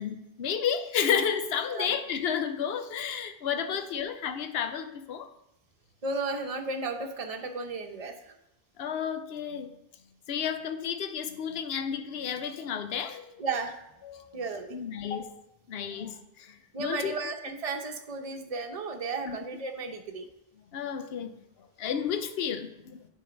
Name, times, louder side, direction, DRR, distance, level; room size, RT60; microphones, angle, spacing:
voice 1, 0.0-5.3 8.8-9.7 10.3-13.4 14.0-14.4 14.7-15.4 15.7-17.2 19.2-19.4 20.7-21.4 21.8-23.1, left 7 dB, 75° left, 7 dB, 0.9 m, -32 dB
voice 2, 6.0-8.3 13.4-13.9 14.3-14.8 16.7-20.3, right 3 dB, 40° right, 4 dB, 0.9 m, -34 dB
9.0 x 3.9 x 5.1 m, 0.87 s
omnidirectional pair, 1.0 m